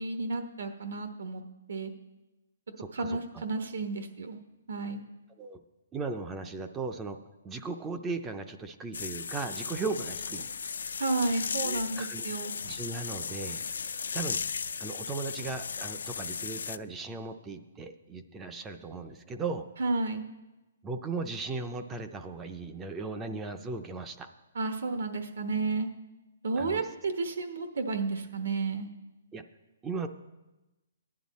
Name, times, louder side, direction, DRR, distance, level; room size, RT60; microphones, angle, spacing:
voice 1, 0.0-1.4 1.7-1.9 2.9-4.4 4.7-5.0 11.0-12.5 19.8-20.3 24.5-25.9 26.4-28.9, right 3 dB, 75° right, 6 dB, 1.0 m, -32 dB
voice 2, 2.8-3.4 5.4-5.6 5.9-7.2 7.4-10.5 11.6-12.3 12.5-13.7 14.1-14.4 14.8-19.7 20.8-24.3 26.6-26.9 29.3-29.5 29.8-30.1, right 4 dB, 10° right, 8 dB, 0.4 m, -37 dB
sound 1, 8.9-16.8, left 6 dB, 75° left, 0.4 m, -36 dB
15.0 x 10.5 x 4.1 m, 1.1 s
hypercardioid pair, 175°, 0 cm